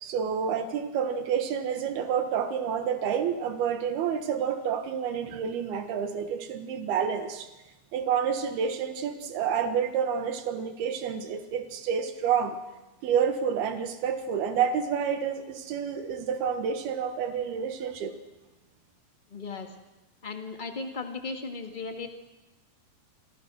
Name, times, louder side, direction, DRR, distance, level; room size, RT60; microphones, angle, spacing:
voice 1, 0.0-7.5 7.9-12.6 13.0-18.1, right 7 dB, 85° right, 8 dB, 3.4 m, -29 dB
voice 2, 19.3-19.8 20.2-22.1, left 4 dB, 70° left, 5 dB, 0.4 m, -36 dB
27.5 x 26.5 x 6.3 m, 1.1 s
omnidirectional pair, 4.4 m